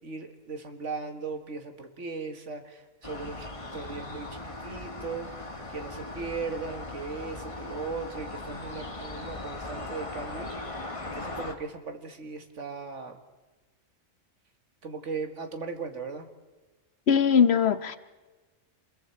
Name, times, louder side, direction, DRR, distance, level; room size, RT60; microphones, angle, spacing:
voice 1, 0.0-3.5 3.7-10.5 11.0-13.2 14.8-16.3, right 4 dB, 80° right, 6 dB, 2.0 m, -38 dB
sound 1, 3.0-11.5, left 2 dB, 25° left, 1.4 m, -39 dB
voice 2, 17.1-18.0, left 7 dB, 60° left, 12 dB, 1.1 m, -21 dB
27.5 x 21.5 x 4.4 m, 1.2 s
omnidirectional pair, 1.2 m